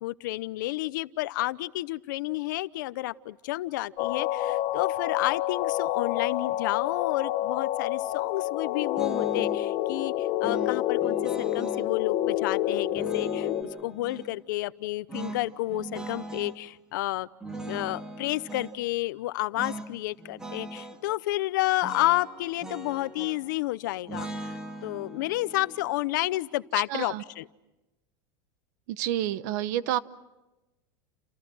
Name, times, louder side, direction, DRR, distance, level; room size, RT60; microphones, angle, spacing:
voice 1, 0.0-13.5 13.8-17.3 17.7-27.5, left 18 dB, 75° left, 16 dB, 0.8 m, -30 dB
sound 1, 4.0-13.6, left 13 dB, 40° left, 1.4 m, -28 dB
sound 2, 9.0-9.6 10.4-11.9 12.9-14.3 15.1-16.6 17.4-18.8 19.6-19.9 20.2-21.0 21.8-23.6 24.1-27.2, right 2 dB, 5° right, 2.1 m, -40 dB
voice 2, 26.9-27.2 29.0-30.0, right 12 dB, 60° right, 16 dB, 1.0 m, -29 dB
30.0 x 27.5 x 6.2 m, 1.0 s
supercardioid pair, 170°, 10 cm